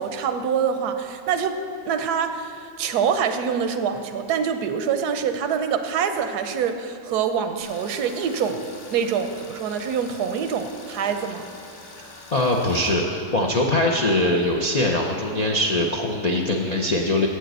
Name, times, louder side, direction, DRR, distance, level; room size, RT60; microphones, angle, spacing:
voice 1, 0.0-1.6 1.8-8.6 8.9-11.5, right 7 dB, 80° right, 8 dB, 1.2 m, -25 dB
Tools, 7.6-12.9, left 2 dB, 40° left, 1.8 m, -44 dB
voice 2, 12.0-17.3, left 1 dB, 60° left, 0 dB, 0.4 m, -22 dB
7.7 x 6.7 x 7.9 m, 2.5 s
omnidirectional pair, 1.7 m